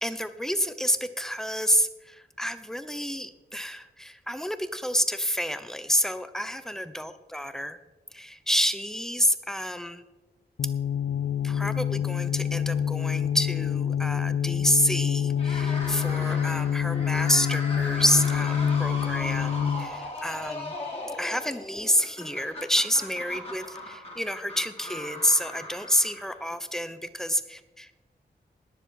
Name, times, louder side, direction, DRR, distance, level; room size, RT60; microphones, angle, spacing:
voice 1, 0.0-7.8 8.1-10.0 11.4-20.7 21.2-27.9, equal, 5° left, 11 dB, 0.9 m, -28 dB
sound 1, 10.6-19.9, left 8 dB, 85° left, 0.6 m, -27 dB
sound 2, 15.3-26.6, left 1 dB, 35° left, 4.2 m, -38 dB
20.5 x 7.2 x 4.1 m, 1.1 s
wide cardioid pair, 85°, 17 cm